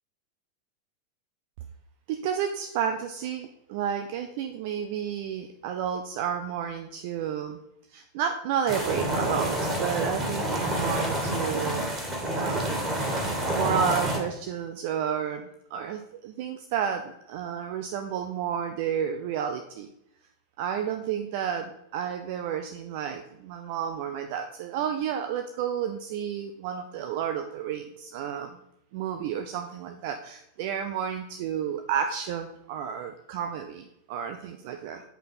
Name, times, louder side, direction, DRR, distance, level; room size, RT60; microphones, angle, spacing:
voice 1, 2.1-7.6 7.9-11.9 12.3-19.9 20.6-28.6 28.9-35.0, right 8 dB, 50° right, 7 dB, 0.6 m, -31 dB
sound 1, 8.7-14.2, right 1 dB, 20° right, 2.8 m, -28 dB
8.9 x 5.3 x 5.7 m, 0.78 s
figure-of-eight pair, 90°, 0 cm